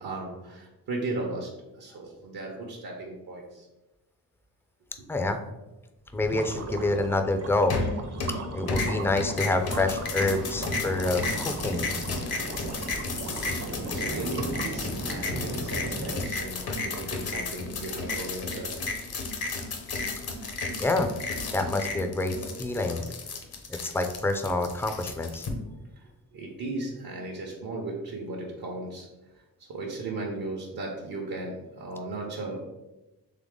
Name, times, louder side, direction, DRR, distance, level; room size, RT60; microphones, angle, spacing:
voice 1, 0.0-1.5 1.7-3.7 8.2-8.6 13.4-18.8 19.4-19.5 26.0-29.1 29.7-32.6, right 2 dB, 70° right, -1 dB, 0.9 m, -36 dB
voice 2, 5.1-5.4 6.1-7.8 8.5-11.9 20.8-21.1 21.5-23.0 23.8-25.5, left 2 dB, 5° left, 6 dB, 0.3 m, -27 dB
sound 1, 6.1-15.0, right 3 dB, 40° right, 0.6 m, -39 dB
sound 2, 7.7-8.4 8.7-25.5, left 3 dB, 70° left, 0.9 m, -33 dB
sound 3, 9.8-16.3, right 2 dB, 85° right, 1.2 m, -38 dB
3.8 x 3.3 x 3.6 m, 1.0 s
cardioid pair, 100°, 38 cm